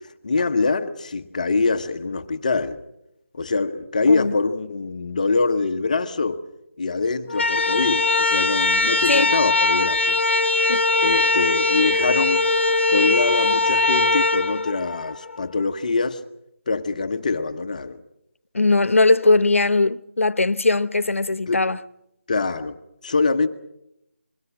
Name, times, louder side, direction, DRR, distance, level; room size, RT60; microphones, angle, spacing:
voice 1, 0.2-2.8 3.3-6.4 6.8-10.2 11.0-12.4 12.9-16.2 16.7-18.0 21.5-21.6 22.3-22.8 23.0-23.5, left 3 dB, 35° left, 1.1 m, -24 dB
sound 1, 7.3-15.4, left 3 dB, 65° left, 0.9 m, -21 dB
voice 2, 18.5-21.8, left 3 dB, 90° left, 0.8 m, -19 dB
27.0 x 22.0 x 5.9 m
figure-of-eight pair, 170°, 7 cm